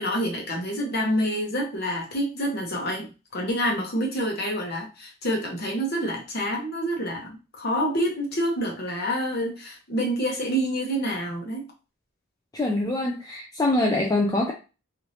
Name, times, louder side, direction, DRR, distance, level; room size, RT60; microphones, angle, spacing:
voice 1, 0.0-11.7, equal, 45° left, 0 dB, 1.0 m, -27 dB
voice 2, 12.5-14.5, left 2 dB, 15° left, 0 dB, 0.3 m, -24 dB
3.1 x 2.7 x 2.7 m, 0.31 s
head